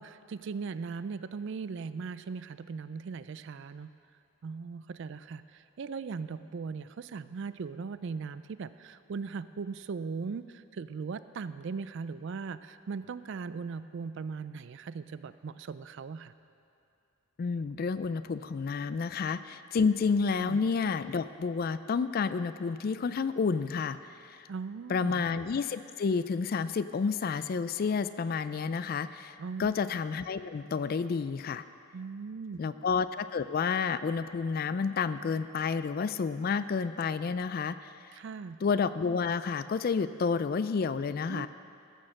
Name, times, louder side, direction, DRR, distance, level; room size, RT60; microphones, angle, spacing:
voice 1, 0.0-3.9 4.4-16.3 20.4-20.6 24.5-25.2 29.4-29.8 31.9-32.6 38.1-38.6 41.3-41.5, right 5 dB, 55° right, 14 dB, 0.3 m, -39 dB
voice 2, 17.4-24.0 24.3-24.4 24.9-29.3 29.6-31.6 32.6-37.9 38.6-41.5, left 5 dB, 45° left, 13 dB, 0.3 m, -30 dB
14.5 x 6.4 x 6.5 m, 2.5 s
head